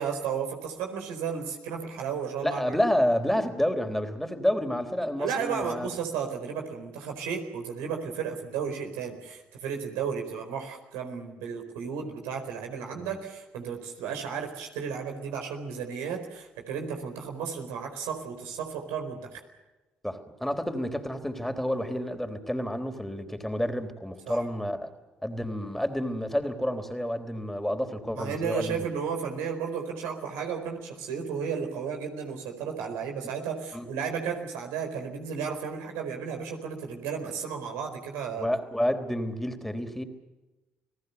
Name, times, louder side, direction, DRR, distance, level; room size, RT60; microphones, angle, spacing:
voice 1, 0.0-2.8 5.2-19.4 24.3-24.4 28.1-38.5, right 6 dB, 85° right, 3 dB, 4.4 m, -33 dB
voice 2, 2.4-5.9 12.9-13.1 20.0-24.9 25.2-28.9 33.7-33.9 38.4-40.0, equal, 5° left, 7 dB, 3.6 m, -29 dB
29.5 x 18.5 x 6.8 m, 1.1 s
hypercardioid pair, 50°, 4 cm